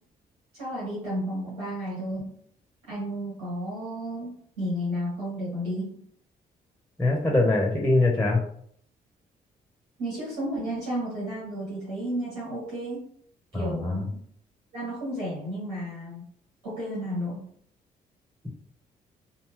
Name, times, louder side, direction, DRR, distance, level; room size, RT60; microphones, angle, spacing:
voice 1, 0.5-2.3 2.9-6.0 10.0-13.0 13.5-14.2 14.7-16.2 16.6-17.4, equal, 80° right, -8 dB, 1.4 m, -32 dB
voice 2, 7.0-8.4 13.5-14.0, left 2 dB, ahead, 0 dB, 0.7 m, -23 dB
2.7 x 2.2 x 3.1 m, 0.64 s
hypercardioid pair, 40°, 21 cm